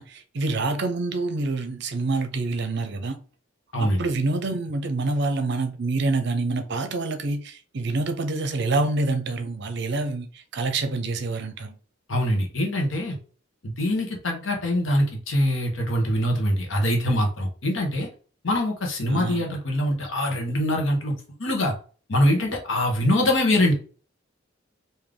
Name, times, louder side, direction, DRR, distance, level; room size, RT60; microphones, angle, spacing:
voice 1, 0.0-3.2 3.8-11.8 19.1-19.5, right 3 dB, 60° right, 0.6 m, -27 dB
voice 2, 12.1-13.2 13.6-18.1 18.4-21.1 21.4-21.7 22.1-23.7, left 1 dB, 75° left, 1.0 m, -23 dB
3.4 x 2.7 x 3.6 m
head